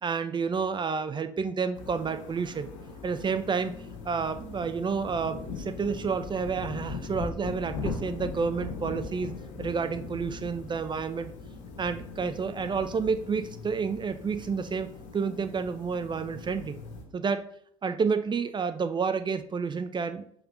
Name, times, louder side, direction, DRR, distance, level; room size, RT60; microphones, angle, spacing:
voice 1, 0.0-2.7 3.0-3.7 4.0-9.3 9.6-11.3 11.8-16.8 17.1-17.5 17.8-20.2, right 5 dB, 30° right, 10 dB, 0.6 m, -30 dB
sound 1, 1.7-17.0, left 4 dB, 75° left, 1.5 m, -40 dB
5.3 x 4.7 x 5.3 m, 0.65 s
hypercardioid pair, 60°, 16 cm